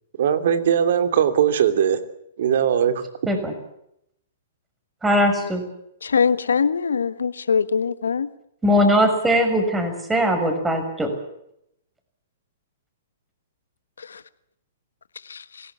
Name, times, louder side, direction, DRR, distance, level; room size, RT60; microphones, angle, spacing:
voice 1, 0.2-2.0 2.4-3.0, right 8 dB, 65° right, 9 dB, 3.0 m, -19 dB
voice 2, 5.0-5.6 8.6-11.1, equal, 10° right, 6 dB, 6.2 m, -20 dB
voice 3, 6.1-8.3, left 6 dB, 85° left, 13 dB, 1.4 m, -21 dB
25.0 x 17.5 x 8.4 m, 0.76 s
hypercardioid pair, 130°, 0 cm